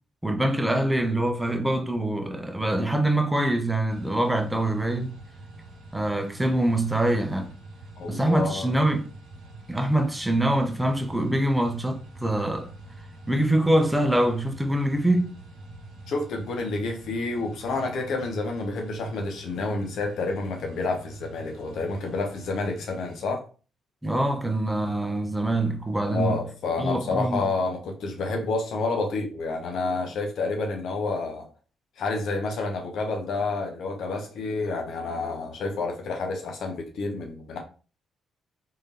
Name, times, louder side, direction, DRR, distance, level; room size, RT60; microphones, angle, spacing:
voice 1, 0.2-5.1 5.9-7.5 8.1-9.1 9.7-12.7 13.3-15.4 24.0-26.4 26.8-27.4, right 1 dB, 10° right, 0.9 m, -24 dB
sound 1, 3.9-23.2, right 2 dB, 70° right, 0.9 m, -46 dB
voice 2, 8.0-8.7 16.1-23.4 26.0-31.5 32.0-37.6, left 3 dB, 65° left, 0.9 m, -29 dB
3.8 x 3.3 x 2.8 m
hypercardioid pair, 45°, 0 cm